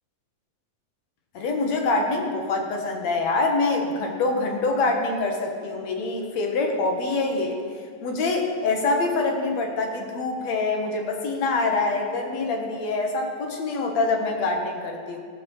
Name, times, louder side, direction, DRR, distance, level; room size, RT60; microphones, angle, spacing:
voice 1, 1.3-7.6 8.0-15.2, left 3 dB, 65° left, 2 dB, 2.5 m, -25 dB
16.0 x 6.0 x 7.0 m, 2.1 s
omnidirectional pair, 3.4 m